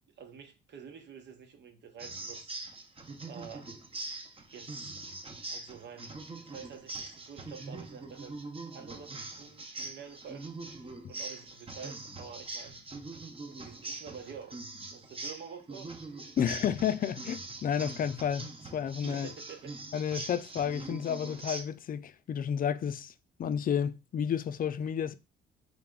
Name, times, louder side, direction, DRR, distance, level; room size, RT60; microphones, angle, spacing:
voice 1, 0.2-2.5 3.2-3.7 4.5-5.0 5.5-8.4 8.7-10.5 11.1-12.8 13.4-15.9 19.1-19.7, right 7 dB, 60° right, 1.1 m, -48 dB
sound 1, 2.0-21.6, right 2 dB, 30° right, 0.9 m, -43 dB
voice 2, 16.4-19.3 19.9-23.1 23.4-25.1, left 8 dB, 45° left, 0.4 m, -31 dB
3.4 x 3.2 x 3.7 m
cardioid pair, 90°, 20 cm